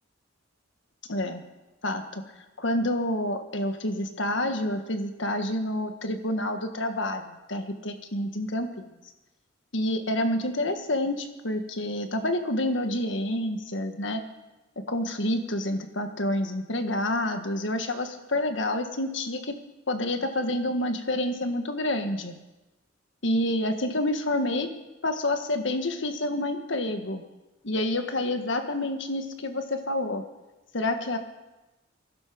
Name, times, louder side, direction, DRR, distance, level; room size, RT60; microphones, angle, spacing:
voice 1, 1.1-1.4 1.8-2.2 2.6-8.9 9.7-14.2 14.7-19.6 19.9-22.3 23.2-24.7 25.0-27.2 27.6-30.2 30.7-31.2, left 1 dB, 70° left, 6 dB, 1.7 m, -28 dB
21.5 x 12.0 x 5.3 m, 1.1 s
head